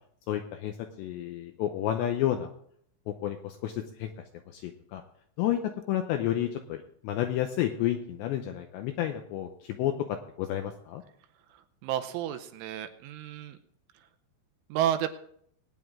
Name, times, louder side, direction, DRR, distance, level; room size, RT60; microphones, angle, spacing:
voice 1, 0.3-2.5 3.1-4.1 4.5-5.0 5.4-11.0, left 11 dB, 85° left, 5 dB, 2.6 m, -31 dB
voice 2, 11.8-13.6 14.7-15.1, right 11 dB, 80° right, 8 dB, 3.0 m, -31 dB
20.5 x 9.3 x 3.6 m, 0.65 s
omnidirectional pair, 5.9 m